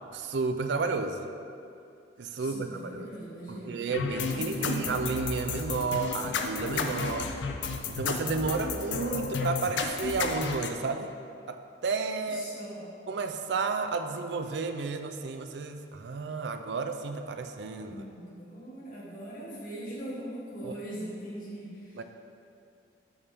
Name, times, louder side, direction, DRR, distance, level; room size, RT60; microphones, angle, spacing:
voice 1, 0.1-1.3 2.2-3.1 3.5-7.3 7.9-11.1 11.5-12.5 13.1-18.0 20.6-20.7 22.0-22.1, right 4 dB, 75° right, 7 dB, 0.4 m, -32 dB
voice 2, 2.3-3.9 4.3-4.9 12.3-12.9 17.8-22.0, right 1 dB, 50° left, -6 dB, 1.5 m, -40 dB
sound 1, 3.9-10.7, left 4 dB, 85° left, 0.5 m, -32 dB
7.1 x 5.1 x 3.5 m, 2.5 s
head